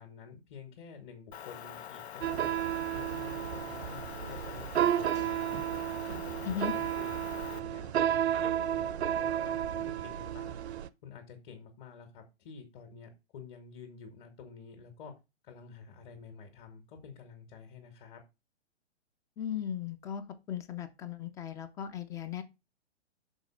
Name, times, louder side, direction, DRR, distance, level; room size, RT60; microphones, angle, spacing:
voice 1, 0.0-2.5 2.9-5.6 6.0-10.6 11.0-15.1 15.4-18.2, left 6 dB, 45° left, 1.8 m, -50 dB
Motor vehicle (road) / Engine, 1.3-7.6, left 9 dB, 70° left, 0.6 m, -45 dB
sound 1, 2.2-10.9, right 10 dB, 70° right, 0.7 m, -32 dB
voice 2, 19.4-22.4, left 8 dB, 10° left, 0.4 m, -37 dB
6.3 x 4.1 x 6.2 m
hypercardioid pair, 120°, 34 cm